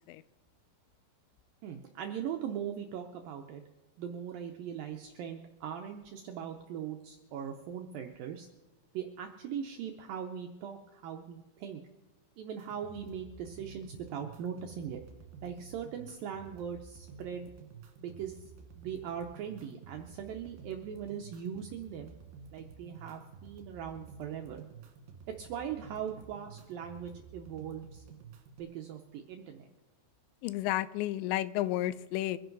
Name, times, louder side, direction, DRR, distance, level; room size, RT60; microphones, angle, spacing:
voice 1, 1.6-3.6 4.0-8.5 8.9-11.8 12.4-15.0 15.4-17.5 18.0-22.1 22.5-24.6 25.3-28.0 28.6-29.7, right 8 dB, 80° right, 2.0 m, -40 dB
sound 1, 12.6-28.6, right 5 dB, 65° right, 3.0 m, -52 dB
voice 2, 30.4-32.4, left 15 dB, 90° left, 2.9 m, -32 dB
24.5 x 10.5 x 4.0 m
omnidirectional pair, 5.1 m